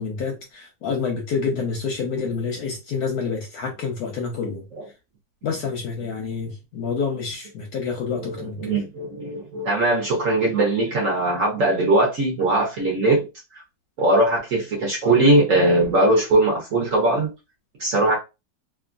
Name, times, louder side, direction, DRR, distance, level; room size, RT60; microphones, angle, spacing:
voice 1, 0.0-4.6 5.4-8.7, left 5 dB, 70° left, 0.9 m, -28 dB
voice 2, 8.1-13.3 13.5-13.6 14.0-17.3 17.8-18.2, right 2 dB, 60° right, 0.9 m, -20 dB
3.0 x 2.3 x 2.4 m
omnidirectional pair, 2.1 m